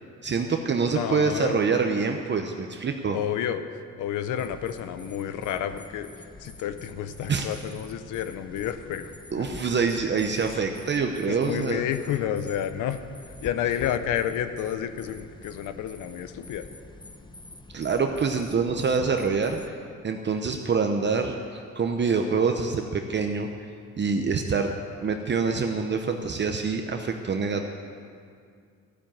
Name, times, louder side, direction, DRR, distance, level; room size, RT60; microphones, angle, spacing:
voice 1, 0.2-3.2 7.3-7.5 9.3-11.8 17.7-19.8 20.0-23.5 24.0-24.7 25.0-27.7, right 5 dB, 35° right, 4 dB, 0.8 m, -26 dB
voice 2, 0.9-1.6 3.1-9.1 9.4-9.6 11.3-16.7, left 10 dB, 85° left, 10 dB, 0.8 m, -30 dB
sound 1, 4.4-19.7, left 2 dB, 15° left, 0.9 m, -47 dB
13.5 x 7.4 x 8.8 m, 2.2 s
cardioid pair, 90°, 30 cm